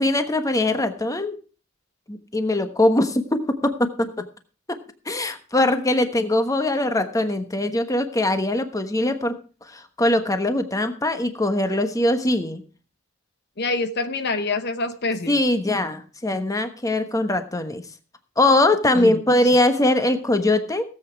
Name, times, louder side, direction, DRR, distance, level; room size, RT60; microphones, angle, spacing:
voice 1, 0.0-1.3 2.1-4.2 4.7-4.8 5.1-9.4 9.7-12.6 15.3-17.8 18.4-20.8, left 1 dB, 15° left, 8 dB, 1.2 m, -21 dB
voice 2, 13.6-15.3 18.9-19.2, left 3 dB, 55° left, 9 dB, 0.9 m, -26 dB
17.0 x 8.2 x 4.7 m, 0.36 s
head